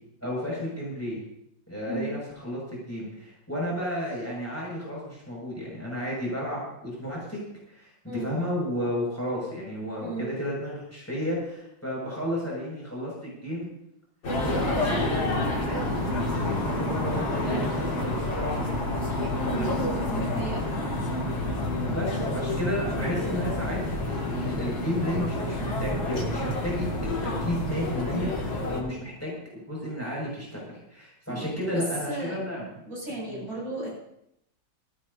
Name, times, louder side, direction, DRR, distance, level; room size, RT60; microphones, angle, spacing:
voice 1, 0.2-1.2 1.7-7.4 7.7-13.7 14.4-18.9 19.3-19.7 21.8-23.8 24.0-29.4 29.7-32.6 33.3-33.4, equal, 5° left, -4 dB, 6.5 m, -32 dB
voice 2, 1.8-2.2 8.0-8.3 10.0-10.4 19.4-19.7 20.1-20.9 31.3-31.5 31.7-32.3 32.9-33.9, right 2 dB, 45° right, -5 dB, 8.1 m, -35 dB
sound 1, 14.2-28.8, left 1 dB, 75° left, 3.2 m, -29 dB
21.0 x 15.0 x 2.8 m, 0.78 s
omnidirectional pair, 2.1 m